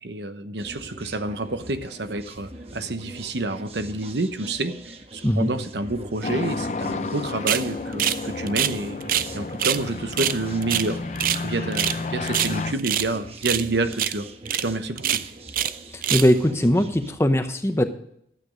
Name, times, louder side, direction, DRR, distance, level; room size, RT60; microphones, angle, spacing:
voice 1, 0.0-11.0 11.4-14.3 14.6-15.2, right 2 dB, 80° right, 9 dB, 1.0 m, -28 dB
sound 1, 0.6-17.1, right 2 dB, 35° right, 1.1 m, -42 dB
sound 2, 6.2-12.7, left 3 dB, 40° left, 0.5 m, -31 dB
sound 3, 7.5-7.7 8.0-8.2 8.5-9.3 9.6-9.8 10.1-11.4 11.7-12.0 12.3-13.1 13.4-13.7 13.9-14.2 14.5-14.6 15.0-15.8 16.0-16.3, right 11 dB, 50° right, 0.5 m, -24 dB
voice 2, 15.9-17.9, equal, 15° left, 8 dB, 0.8 m, -20 dB
12.5 x 8.6 x 5.1 m, 0.71 s
head